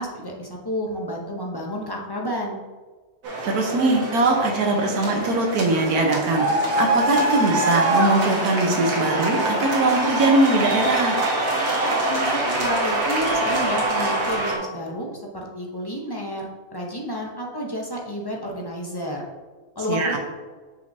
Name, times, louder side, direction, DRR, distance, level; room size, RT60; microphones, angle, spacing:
voice 1, 0.0-2.6 12.1-19.3 19.8-20.2, equal, 25° left, -1 dB, 0.5 m, -30 dB
sound 1, 3.2-14.6, right 1 dB, 65° right, 1.4 m, -24 dB
voice 2, 3.4-11.2 19.9-20.2, right 2 dB, 85° right, 0 dB, 1.5 m, -21 dB
6.2 x 5.7 x 2.7 m, 1.3 s
omnidirectional pair, 1.6 m